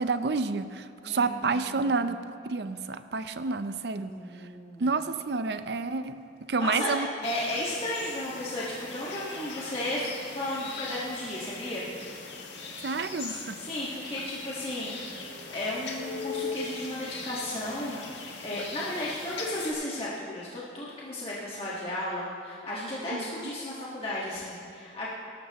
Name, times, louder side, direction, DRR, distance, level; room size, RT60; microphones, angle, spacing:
voice 1, 0.0-2.2 2.5-4.1 4.8-6.2 6.5-7.1 12.8-13.6 23.1-23.2, right 4 dB, 65° right, 11 dB, 0.5 m, -29 dB
voice 2, 1.1-2.1 4.0-5.0 6.6-10.1 10.3-11.9 13.5-15.0 15.5-25.1, left 1 dB, 35° left, -7 dB, 1.6 m, -34 dB
sound 1, 7.2-19.7, left 4 dB, 90° left, 1.6 m, -40 dB
18.5 x 12.0 x 3.0 m, 2.7 s
head